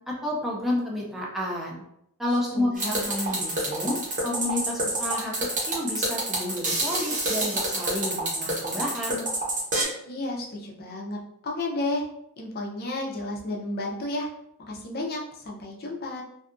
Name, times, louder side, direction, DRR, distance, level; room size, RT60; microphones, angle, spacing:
voice 1, 0.1-1.8 2.2-5.3 5.6-9.2, left 1 dB, ahead, -4 dB, 0.5 m, -30 dB
voice 2, 2.5-3.0 10.0-12.0 12.4-14.3 14.7-16.2, left 2 dB, 45° left, -1 dB, 0.5 m, -32 dB
sound 1, 2.8-9.8, right 2 dB, 35° right, 0.8 m, -27 dB
2.6 x 2.3 x 2.5 m, 0.76 s
head